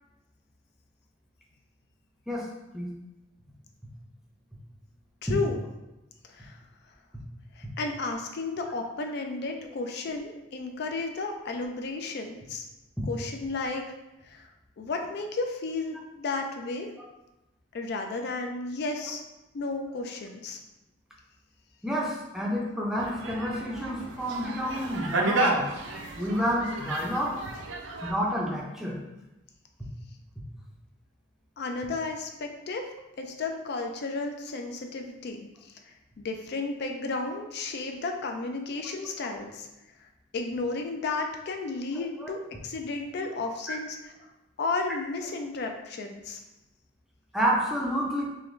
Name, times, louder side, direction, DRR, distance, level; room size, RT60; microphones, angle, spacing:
voice 1, 5.2-5.6 6.3-6.6 7.6-12.7 13.1-13.9 14.3-14.5 14.8-16.9 17.7-19.2 19.5-20.6 31.6-32.9 33.2-35.7 36.2-39.7 40.0-44.3 44.6-46.4, left 3 dB, 55° left, 3 dB, 0.4 m, -33 dB
voice 2, 21.8-25.7 26.1-27.4 28.0-29.0 42.0-42.3 43.7-43.8 47.3-48.2, equal, ahead, -3 dB, 0.5 m, -29 dB
sound 1, 23.0-28.1, right 2 dB, 70° right, 0.5 m, -32 dB
3.7 x 2.9 x 3.1 m, 0.98 s
head